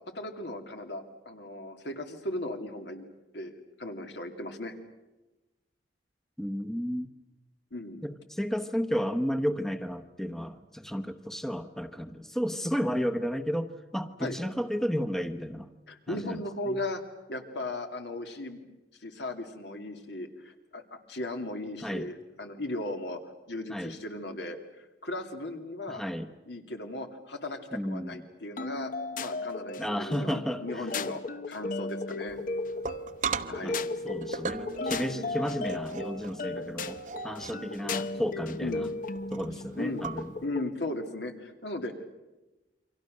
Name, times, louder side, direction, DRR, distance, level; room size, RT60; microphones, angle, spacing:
voice 1, 0.1-3.1 3.3-4.7 7.7-8.1 14.2-14.4 15.9-17.0 17.3-18.6 19.0-23.2 23.5-26.0 26.5-31.2 31.5-32.4 33.5-33.8 38.6-38.8 39.8-40.1 40.4-42.1, left 1 dB, 75° left, 5 dB, 2.7 m, -37 dB
voice 2, 6.4-7.1 8.0-15.7 16.1-16.8 21.8-22.1 23.7-23.9 25.9-26.3 27.7-28.2 29.8-30.9 33.6-33.7 34.0-38.9 39.3-40.3, equal, ahead, 7 dB, 1.0 m, -32 dB
sound 1, 28.6-40.7, left 3 dB, 50° left, 0.9 m, -36 dB
sound 2, 32.3-40.5, right 4 dB, 45° right, 0.9 m, -39 dB
29.0 x 24.5 x 6.5 m, 1.1 s
head